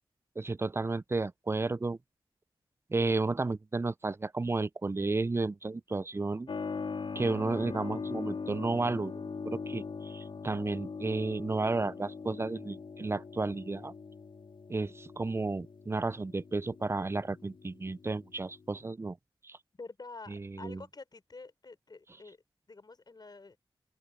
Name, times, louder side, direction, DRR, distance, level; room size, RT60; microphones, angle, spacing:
voice 1, 0.4-2.0 2.9-6.5 7.2-9.1 9.4-13.9 14.7-19.2 19.4-19.6 20.3-20.8, right 3 dB, 30° right, 0.4 m, -32 dB
Keyboard (musical), 6.5-18.9, left 5 dB, 70° left, 4.0 m, -41 dB
voice 2, 19.8-23.6, left 3 dB, 50° left, 4.0 m, -48 dB
open air
cardioid pair, 50°, 9 cm